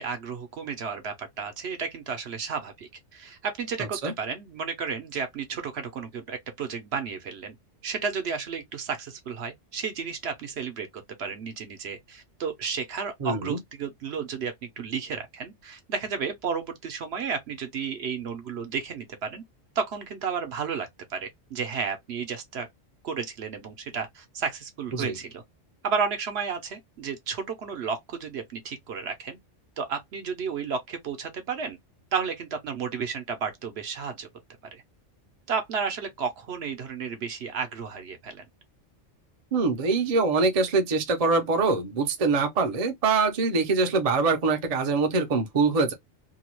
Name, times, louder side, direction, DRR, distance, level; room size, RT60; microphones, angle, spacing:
voice 1, 0.0-7.5 7.8-10.9 11.2-19.4 19.8-22.7 23.0-25.4 25.8-29.4 29.8-31.8 32.1-34.3 34.7-34.8 35.5-38.4, right 6 dB, 65° right, 0.9 m, -32 dB
voice 2, 13.2-13.6 24.9-25.1 39.5-45.9, right 4 dB, 40° right, 0.6 m, -24 dB
2.8 x 2.3 x 2.9 m
omnidirectional pair, 1.3 m